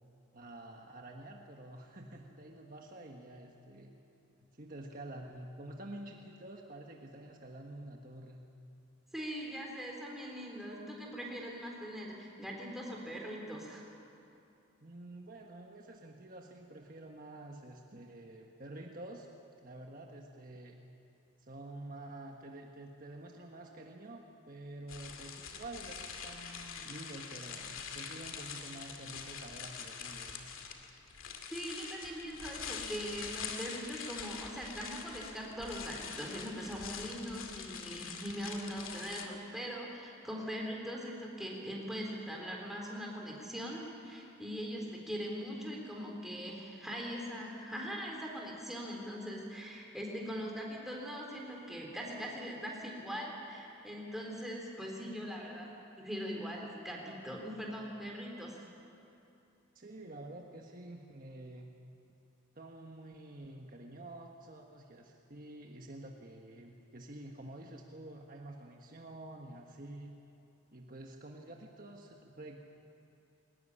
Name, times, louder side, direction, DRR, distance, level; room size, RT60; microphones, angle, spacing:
voice 1, 0.3-4.0 4.4-8.4 14.8-19.3 19.6-20.8 21.4-30.5 59.7-61.7 62.5-70.1 70.7-72.6, right 1 dB, 45° right, 1 dB, 1.5 m, -48 dB
voice 2, 9.1-13.9 31.5-55.7 56.0-58.6, equal, ahead, -1 dB, 3.9 m, -41 dB
sound 1, 24.9-39.3, left 6 dB, 85° left, 2.3 m, -44 dB
21.5 x 19.0 x 10.0 m, 2.8 s
head